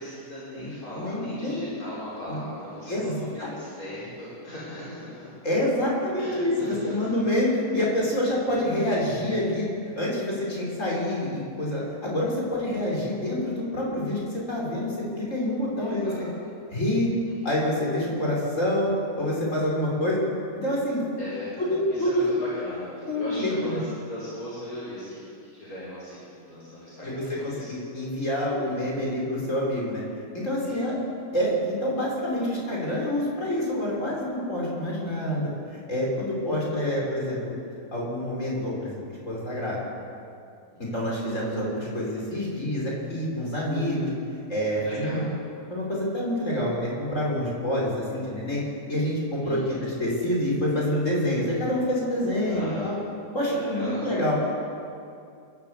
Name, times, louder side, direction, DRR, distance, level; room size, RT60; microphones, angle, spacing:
voice 1, 0.0-5.3 6.2-6.9 15.8-16.2 17.2-17.3 21.2-27.7 28.6-28.7 30.6-30.8 40.7-40.9 44.8-45.3 49.4-49.8 52.5-52.9 53.6-54.1, equal, 75° left, -9 dB, 6.1 m, -38 dB
voice 2, 0.6-1.6 2.3-2.4 2.9-3.5 5.4-9.7 10.0-16.1 16.7-17.1 17.4-20.2 20.5-21.0 21.7-22.3 23.1-23.8 27.0-30.0 30.3-30.9 31.3-37.5 37.9-39.9 40.9-44.1 44.5-45.2 45.7-48.6 48.9-52.9 53.3-54.5, left 1 dB, 55° left, -4 dB, 5.8 m, -27 dB
27.5 x 13.5 x 8.2 m, 2.5 s
omnidirectional pair, 1.6 m